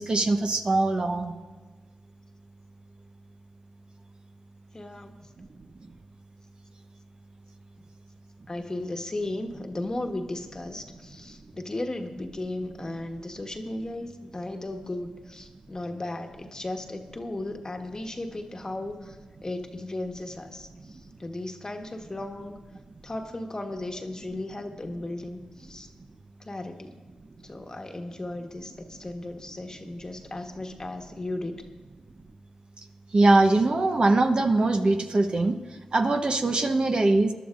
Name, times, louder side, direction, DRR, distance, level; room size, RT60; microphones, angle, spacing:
voice 1, 0.0-1.3 5.4-5.5 20.8-21.0 33.1-35.6 35.9-37.3, right 2 dB, 45° right, 5 dB, 1.0 m, -22 dB
voice 2, 4.7-5.3 8.5-19.2 19.4-22.6 23.0-25.9 26.4-27.0 27.4-31.6, left 2 dB, 30° left, 4 dB, 1.3 m, -35 dB
21.5 x 11.5 x 2.6 m, 1.4 s
cardioid pair, 50°, 2 cm